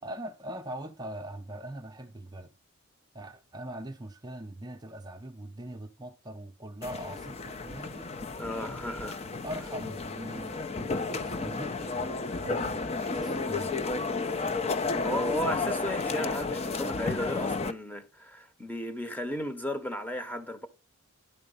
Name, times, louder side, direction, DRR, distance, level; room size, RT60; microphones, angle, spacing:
voice 1, 0.0-2.5 3.1-8.1 9.4-13.8, right 1 dB, 20° right, 0.6 m, -42 dB
sound 1, 6.8-17.7, left 3 dB, 30° left, 0.5 m, -32 dB
voice 2, 8.4-9.2 15.0-20.7, equal, 10° left, 0.9 m, -34 dB
11.0 x 4.2 x 5.5 m
head